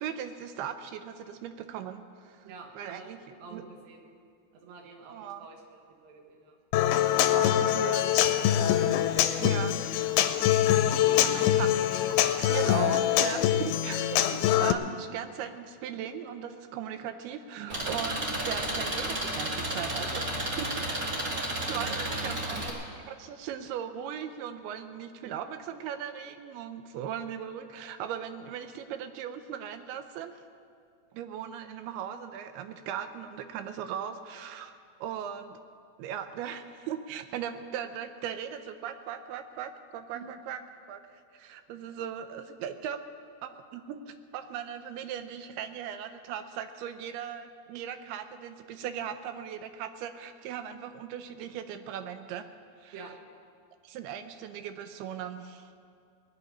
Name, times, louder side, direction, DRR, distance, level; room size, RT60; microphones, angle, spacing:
voice 1, 0.0-3.2 3.5-3.6 5.1-5.5 7.3-8.3 9.3-9.9 11.2-11.7 12.1-20.7 21.7-22.8 23.1-30.3 31.1-35.6 36.0-40.6 40.9-43.0 43.4-52.4 52.8-53.1 53.8-55.7, right 9 dB, 80° right, 9 dB, 2.4 m, -38 dB
voice 2, 2.4-4.0 4.5-6.5 11.2-11.3 13.6-13.8 17.6-17.8 21.7-22.7 40.1-40.2 52.9-53.1, right 6 dB, 60° right, 2 dB, 3.0 m, -47 dB
Human voice / Acoustic guitar, 6.7-14.7, left 11 dB, 80° left, 2.3 m, -24 dB
Engine, 17.7-22.7, right 1 dB, 45° right, 1.1 m, -32 dB
20.0 x 6.8 x 9.9 m, 2.3 s
omnidirectional pair, 5.0 m